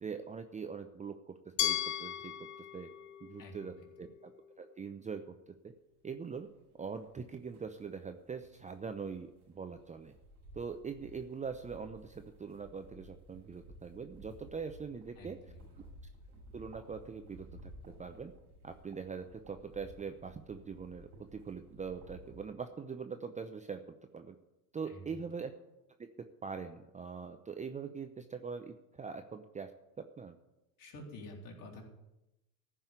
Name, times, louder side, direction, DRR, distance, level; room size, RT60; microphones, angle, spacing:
voice 1, 0.0-2.9 3.2-4.3 4.6-5.7 6.0-6.5 6.8-10.1 10.5-15.4 16.5-18.3 18.6-23.8 24.1-24.3 24.7-25.5 26.4-29.7 30.0-30.4, right 5 dB, 15° right, 7 dB, 0.7 m, -43 dB
Glass, 1.6-4.5, left 11 dB, 85° left, 0.8 m, -37 dB
voice 2, 3.4-3.8 15.2-15.6 24.9-25.2 30.8-31.9, left 1 dB, 45° left, 0 dB, 3.8 m, -49 dB
sound 1, 6.2-22.4, equal, 80° right, 5.1 m, -56 dB
14.5 x 5.6 x 8.2 m, 0.95 s
hypercardioid pair, 85°, 46 cm